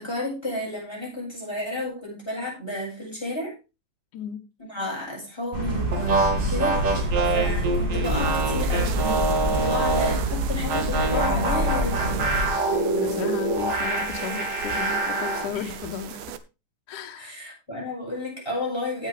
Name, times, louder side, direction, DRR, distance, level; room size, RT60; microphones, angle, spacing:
voice 1, 0.0-3.5 4.6-9.1 9.4-12.3 15.5-15.7 17.2-19.1, left 1 dB, 5° left, -2 dB, 7.1 m, -32 dB
sound 1, 5.5-12.5, equal, 15° right, 3.0 m, -26 dB
sound 2, 5.9-10.3 10.7-15.5, right 2 dB, 50° right, 3.8 m, -26 dB
sound 3, 8.0-16.4, right 10 dB, 80° right, 2.4 m, -37 dB
voice 2, 9.6-10.3 12.7-16.2 16.9-17.3, left 9 dB, 75° left, 3 dB, 2.6 m, -35 dB
16.0 x 7.5 x 3.6 m, 0.29 s
omnidirectional pair, 3.6 m